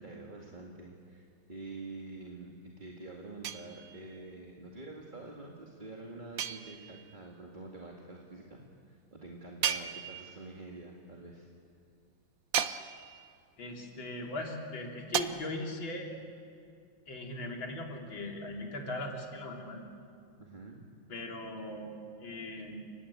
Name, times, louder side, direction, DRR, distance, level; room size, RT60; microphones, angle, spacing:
voice 1, 0.0-8.6 8.9-11.5 20.4-20.9, right 2 dB, 25° right, -1 dB, 2.3 m, -47 dB
sound 1, 3.4-4.2 6.4-7.2 9.6-10.5 12.5-13.3 15.1-15.2, right 9 dB, 55° right, 1.0 m, -35 dB
voice 2, 13.6-16.1 17.1-19.8 21.1-21.9 22.2-22.8, left 2 dB, 75° left, 0 dB, 3.9 m, -39 dB
30.0 x 20.0 x 8.5 m, 2.3 s
omnidirectional pair, 2.2 m